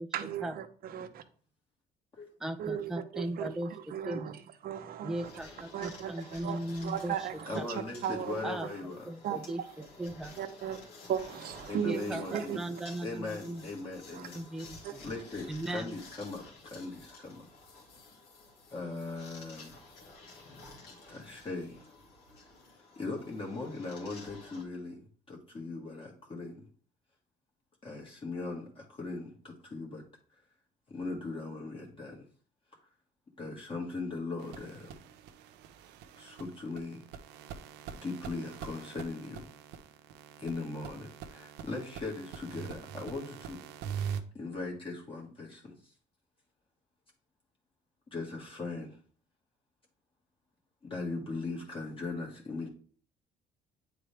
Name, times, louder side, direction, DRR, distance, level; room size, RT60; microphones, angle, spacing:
voice 1, 0.1-1.2 2.6-4.4 4.6-5.3 5.7-8.5 9.2-9.4 10.4-10.8 11.1-12.6 14.1-14.3 14.8-14.9, right 9 dB, 60° right, 0.8 m, -36 dB
voice 2, 2.4-4.4 5.0-7.3 7.5-7.7 8.4-8.7 9.1-10.3 11.8-13.6 14.3-15.0 15.5-16.0, right 1 dB, 5° right, 0.5 m, -38 dB
sound 1, 5.1-24.6, left 3 dB, 80° left, 2.3 m, -53 dB
voice 3, 7.5-9.1 11.7-12.6 13.0-17.5 18.7-19.7 21.1-21.9 23.0-25.0 25.3-26.6 27.8-30.0 30.9-32.2 33.4-35.0 36.2-37.1 37.9-39.5 40.4-43.6 44.3-45.9 48.1-49.0 50.9-52.7, left 3 dB, 30° left, 1.7 m, -39 dB
sound 2, 34.4-44.2, right 8 dB, 90° right, 0.6 m, -43 dB
8.8 x 3.8 x 3.4 m
cardioid pair, 110°, 17 cm